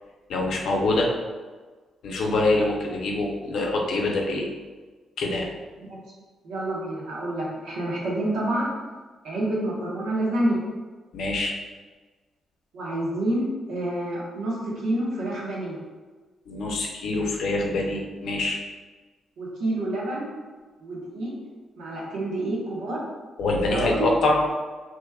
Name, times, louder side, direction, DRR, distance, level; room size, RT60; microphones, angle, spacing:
voice 1, 0.3-1.1 2.0-4.5 5.2-5.5 11.1-11.6 16.5-18.6 23.4-24.4, left 2 dB, 75° left, 0 dB, 0.5 m, -25 dB
voice 2, 6.4-8.7 9.2-10.6 12.7-15.8 19.4-20.3 20.8-21.3 21.8-23.0 23.7-24.1, right 1 dB, 90° right, -5 dB, 1.0 m, -28 dB
3.4 x 3.0 x 2.2 m, 1.4 s
cardioid pair, 85°, 0 cm